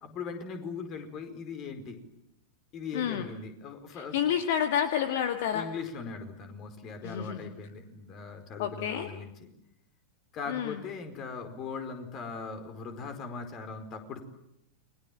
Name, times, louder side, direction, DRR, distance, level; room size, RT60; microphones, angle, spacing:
voice 1, 0.0-2.0 2.7-4.2 5.5-9.3 10.3-14.2, left 5 dB, 35° left, 7 dB, 4.8 m, -39 dB
voice 2, 2.9-3.3 3.9-5.7 7.0-7.5 8.6-9.1 10.5-10.8, left 9 dB, 55° left, 8 dB, 1.9 m, -29 dB
30.0 x 23.5 x 7.6 m, 0.80 s
figure-of-eight pair, 90°, 0 cm